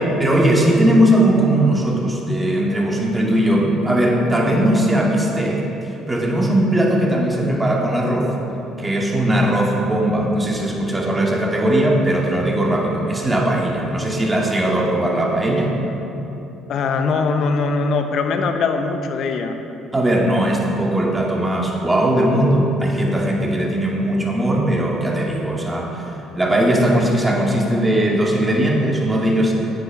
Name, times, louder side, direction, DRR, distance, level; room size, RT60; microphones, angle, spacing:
voice 1, 0.2-8.3 8.8-15.7 19.9-29.5, right 1 dB, 20° right, -2 dB, 2.4 m, -19 dB
voice 2, 16.7-19.6, left 4 dB, 60° left, 6 dB, 1.0 m, -21 dB
9.4 x 9.2 x 5.5 m, 2.9 s
hypercardioid pair, 55°, 0 cm